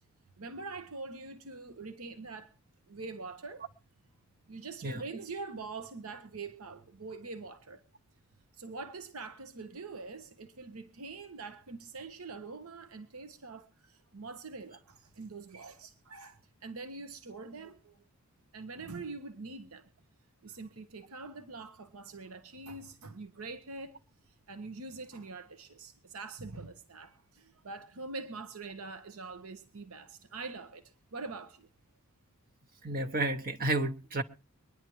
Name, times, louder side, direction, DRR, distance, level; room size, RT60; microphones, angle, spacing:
voice 1, 0.4-2.5 2.9-3.7 4.5-7.8 8.5-18.0 18.5-19.9 20.4-24.0 24.3-31.7, right 3 dB, 75° right, 1.0 m, -44 dB
voice 2, 32.8-34.2, right 2 dB, 40° right, 0.9 m, -31 dB
23.5 x 10.5 x 3.0 m
head